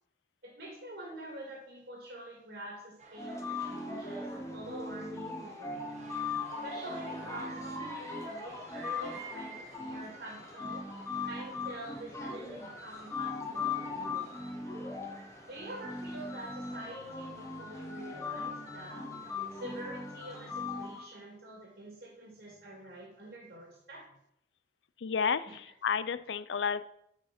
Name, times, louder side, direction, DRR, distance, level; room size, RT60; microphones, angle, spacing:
voice 1, 0.4-5.9 6.6-10.9 11.3-14.3 15.5-19.1 19.5-24.1 25.5-25.6, right 1 dB, 65° right, 0 dB, 2.2 m, -46 dB
sound 1, 3.0-19.8, right 2 dB, 40° right, 1.3 m, -53 dB
sound 2, 3.2-21.0, left 4 dB, 15° left, 1.2 m, -39 dB
voice 2, 25.0-25.5 25.8-26.9, left 6 dB, 80° left, 15 dB, 0.5 m, -30 dB
9.5 x 4.8 x 5.9 m, 0.73 s
head